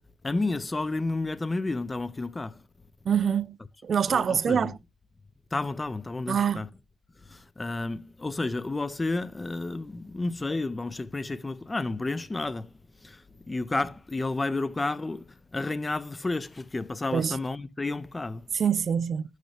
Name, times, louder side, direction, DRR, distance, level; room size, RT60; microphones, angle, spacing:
voice 1, 0.2-2.7 4.1-4.7 5.5-6.7 7.2-18.5, left 2 dB, 20° left, 0.7 m, -31 dB
voice 2, 3.1-3.6 3.8-4.8 6.3-6.6 17.1-17.4 18.6-19.2, right 7 dB, 50° right, 0.4 m, -25 dB
11.5 x 6.5 x 3.3 m
cardioid pair, 90°, 0 cm